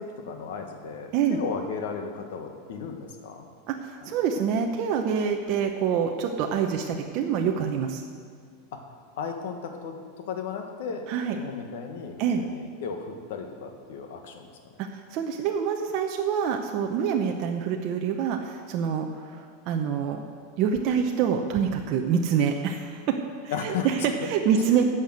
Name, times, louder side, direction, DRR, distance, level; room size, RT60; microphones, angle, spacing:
voice 1, 0.0-3.5 9.2-9.9 10.3-11.1 11.3-14.5 23.5-23.9 24.5-24.8, left 6 dB, 70° left, 4 dB, 1.5 m, -35 dB
voice 2, 3.7-8.0 11.1-11.4 12.2-12.4 14.8-20.2 20.6-23.1 23.4-24.8, right 7 dB, 35° right, 3 dB, 0.7 m, -26 dB
11.0 x 6.6 x 7.9 m, 2.1 s
supercardioid pair, 170°, 0 cm